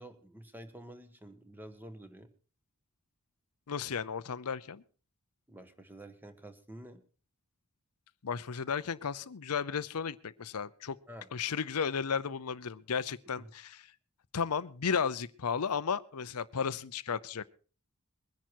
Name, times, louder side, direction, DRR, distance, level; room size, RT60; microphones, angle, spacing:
voice 1, 0.0-2.3 5.5-7.0 11.1-11.3 13.4-13.5, right 1 dB, 10° right, 8 dB, 1.3 m, -49 dB
voice 2, 3.7-4.8 8.2-11.0 11.3-13.9 14.3-17.4, left 6 dB, 85° left, 15 dB, 0.6 m, -34 dB
21.5 x 10.5 x 4.6 m, 0.39 s
head